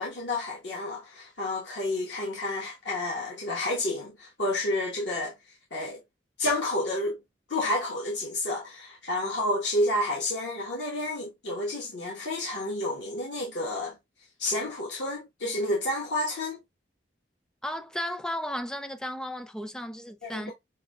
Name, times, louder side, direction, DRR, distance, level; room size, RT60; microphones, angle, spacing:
voice 1, 0.0-5.3 5.7-6.0 6.4-7.2 7.5-13.9 14.4-16.6 20.2-20.5, left 1 dB, 70° left, 1.1 m, -30 dB
voice 2, 17.6-20.5, equal, 5° left, 0.4 m, -34 dB
5.8 x 2.7 x 2.2 m
head